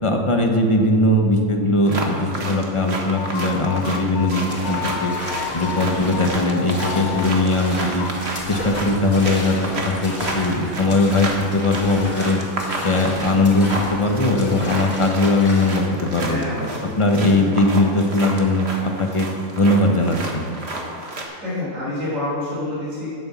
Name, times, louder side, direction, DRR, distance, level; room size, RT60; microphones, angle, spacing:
voice 1, 0.0-5.1 5.5-8.1 8.5-12.4 12.8-16.4 16.8-19.3 19.6-20.4, left 2 dB, 25° left, 2 dB, 1.1 m, -19 dB
sound 1, 1.9-21.2, right 2 dB, 50° right, 1.7 m, -31 dB
sound 2, 2.2-8.1, left 9 dB, 75° left, 0.4 m, -33 dB
sound 3, 4.4-15.9, left 1 dB, 40° left, 2.9 m, -33 dB
voice 2, 16.2-16.9 21.4-23.1, left 1 dB, 70° right, -8 dB, 4.3 m, -27 dB
11.0 x 8.8 x 7.0 m, 2.4 s
omnidirectional pair, 1.4 m